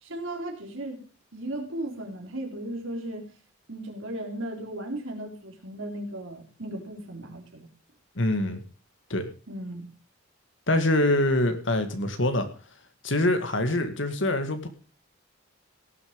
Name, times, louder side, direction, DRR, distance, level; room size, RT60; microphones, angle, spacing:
voice 1, 0.0-1.0 1.3-3.3 3.7-7.7 9.5-9.9, right 1 dB, 70° right, 2 dB, 3.6 m, -36 dB
voice 2, 8.2-8.6 9.1-9.3 10.7-12.5 13.0-14.7, left 1 dB, 65° left, 9 dB, 2.1 m, -24 dB
17.5 x 7.3 x 5.1 m, 0.36 s
head